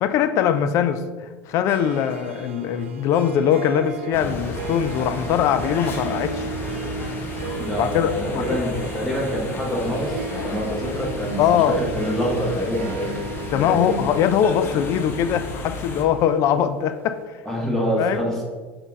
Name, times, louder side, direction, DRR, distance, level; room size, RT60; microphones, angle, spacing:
voice 1, 0.0-6.5 7.7-8.6 11.4-11.8 13.5-17.4 18.0-18.2, left 9 dB, 50° left, 11 dB, 0.3 m, -21 dB
Harp, 1.5-16.8, right 5 dB, 85° right, 0.4 m, -36 dB
sound 1, 4.1-16.0, left 2 dB, 35° left, 0.8 m, -33 dB
voice 2, 7.6-14.0 17.4-18.4, equal, 5° left, -3 dB, 1.4 m, -26 dB
5.5 x 2.6 x 3.6 m, 1.4 s
hypercardioid pair, 80°, 6 cm